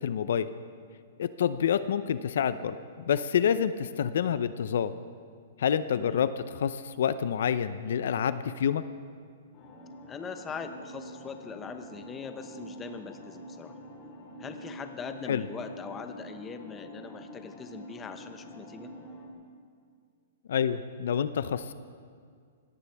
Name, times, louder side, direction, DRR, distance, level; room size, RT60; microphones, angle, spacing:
voice 1, 0.0-0.5 1.2-2.7 3.0-4.9 5.6-8.8 15.3-15.4 20.5-21.7, left 8 dB, 65° left, 13 dB, 0.6 m, -27 dB
voice 2, 5.9-6.3 10.1-13.7 14.4-18.9, left 5 dB, 15° left, 8 dB, 0.8 m, -41 dB
sound 1, 9.5-19.3, equal, 30° left, 2.3 m, -46 dB
22.5 x 18.0 x 3.5 m, 2.1 s
hypercardioid pair, 165°, 0 cm